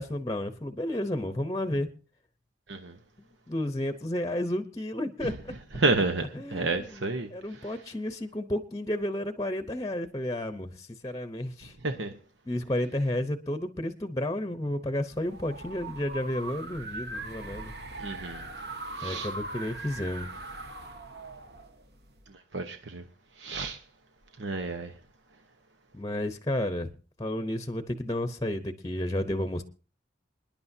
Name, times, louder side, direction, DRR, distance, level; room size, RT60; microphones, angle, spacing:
voice 1, 0.0-1.9 3.5-5.5 6.3-7.0 7.3-11.7 12.5-17.7 19.0-20.3 25.9-26.9 27.2-29.6, left 1 dB, 20° left, 0.8 m, -32 dB
voice 2, 5.7-7.7 11.8-12.1 18.0-18.5 19.0-19.3 22.5-23.0 23.4-23.8 24.4-24.9, right 3 dB, 85° right, 1.0 m, -30 dB
sound 1, 15.1-22.3, right 2 dB, 60° right, 1.3 m, -40 dB
27.5 x 10.5 x 2.7 m
head